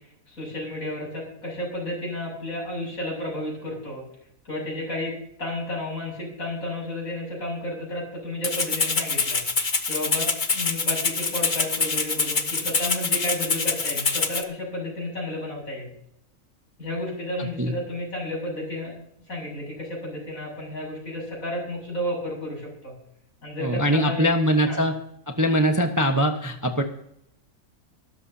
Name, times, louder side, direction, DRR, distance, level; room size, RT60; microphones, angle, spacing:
voice 1, 0.3-4.0 4.5-9.4 9.9-15.9 16.8-18.9 19.3-22.9 23.4-24.8, left 1 dB, 65° left, -2 dB, 7.9 m, -32 dB
Rattle (instrument), 8.4-14.4, left 4 dB, 35° left, 1.2 m, -25 dB
voice 2, 23.6-25.0 25.3-26.8, equal, 15° right, 4 dB, 1.0 m, -22 dB
22.5 x 13.5 x 2.8 m, 0.73 s
omnidirectional pair, 1.6 m